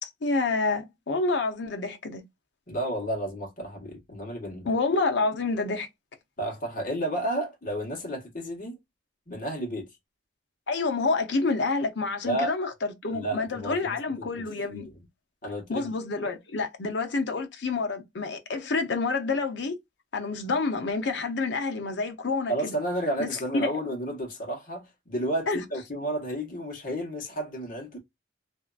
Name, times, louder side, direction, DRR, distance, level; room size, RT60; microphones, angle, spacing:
voice 1, 0.0-2.2 4.7-5.9 10.7-14.9 15.7-19.8 20.1-22.7 23.2-23.7 25.5-25.6, left 3 dB, 70° left, 0.7 m, -28 dB
voice 2, 2.7-4.7 6.4-8.8 9.3-10.0 12.2-12.5 13.1-15.0 15.4-15.9 22.5-28.0, right 1 dB, 45° left, 1.2 m, -32 dB
2.7 x 2.5 x 2.2 m
head